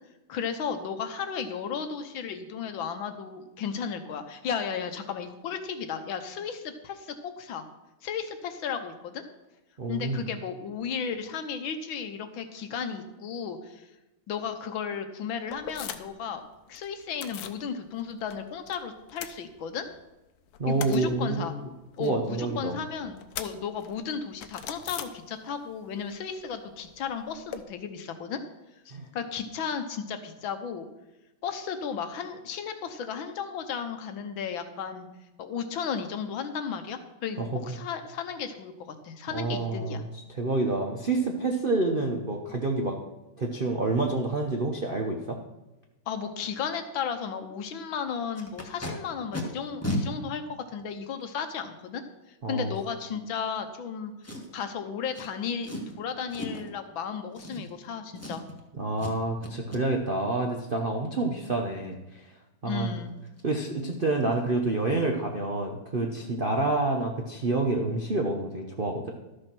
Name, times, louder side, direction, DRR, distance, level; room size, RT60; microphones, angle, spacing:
voice 1, 0.3-7.6 8.0-9.2 9.9-13.8 14.3-16.4 16.7-19.9 20.7-21.6 22.0-28.4 28.8-30.9 31.4-35.1 35.4-40.0 46.1-50.4 50.7-54.1 54.5-55.7 56.0-58.5 62.6-63.2, left 6 dB, 70° left, 8 dB, 1.6 m, -34 dB
voice 2, 9.8-10.2 20.6-21.5 22.0-22.8 28.9-29.1 37.4-37.8 39.3-40.1 40.3-43.0 43.4-45.4 52.4-52.7 58.7-62.2 62.6-62.9 63.4-69.1, right 2 dB, 50° right, 1 dB, 0.6 m, -28 dB
sound 1, 15.5-16.3 16.5-17.6 18.0-18.8 19.0-20.0 20.4-25.7 26.0-27.6, left 9 dB, 85° left, 1.7 m, -42 dB
Packing tape duct tape, 48.4-48.9 49.3-49.4 49.8-50.0 50.8-50.9 54.2-54.7 55.1-55.3 55.6-55.9 56.3-56.7 57.3-57.9 58.2-58.6 59.0-59.2 59.4-59.8 62.9-63.0 63.3-63.4 63.8-63.9 64.2-64.5 64.7-64.8, left 1 dB, 10° left, 1.2 m, -34 dB
12.5 x 6.6 x 6.1 m, 1.0 s
omnidirectional pair, 2.4 m